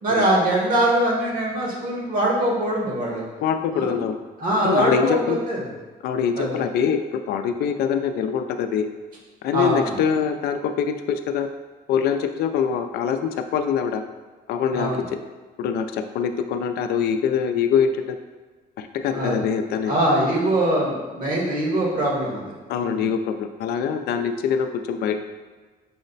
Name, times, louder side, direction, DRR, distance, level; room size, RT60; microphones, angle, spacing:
voice 1, 0.0-3.3 3.7-3.9 4.4-5.7 6.4-6.6 9.5-10.0 14.7-15.1 19.1-19.4 19.9-23.1, right 1 dB, 60° right, -2 dB, 1.4 m, -23 dB
voice 2, 3.4-4.2 4.6-5.4 6.0-8.9 9.4-11.5 11.9-14.0 14.5-14.9 15.6-18.2 18.8-20.0 22.7-25.2, left 7 dB, 80° left, 8 dB, 0.4 m, -24 dB
6.2 x 2.1 x 3.9 m, 1.3 s
cardioid pair, 135°, 16 cm